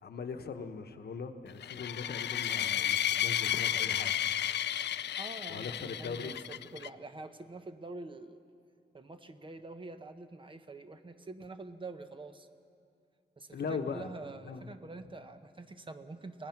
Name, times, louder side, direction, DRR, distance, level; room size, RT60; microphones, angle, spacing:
voice 1, 0.0-4.1 5.5-6.3 13.5-14.1 14.4-14.7, left 5 dB, 65° left, 7 dB, 1.1 m, -40 dB
sound 1, 1.6-6.9, left 10 dB, 80° left, 0.4 m, -32 dB
voice 2, 5.2-8.4 8.9-12.5 13.4-16.5, right 2 dB, 30° right, 8 dB, 0.9 m, -46 dB
26.0 x 19.0 x 5.9 m, 2.4 s
wide cardioid pair, 165°, 18 cm